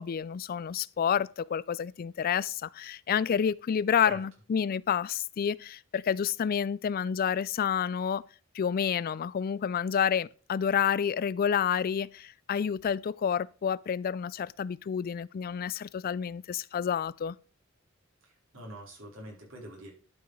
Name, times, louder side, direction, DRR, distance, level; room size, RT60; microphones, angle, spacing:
voice 1, 0.0-4.1 4.5-8.2 8.5-17.4, left 7 dB, 45° left, 0.3 m, -29 dB
voice 2, 18.2-19.9, right 1 dB, 90° right, 4.6 m, -44 dB
11.5 x 5.7 x 4.8 m
head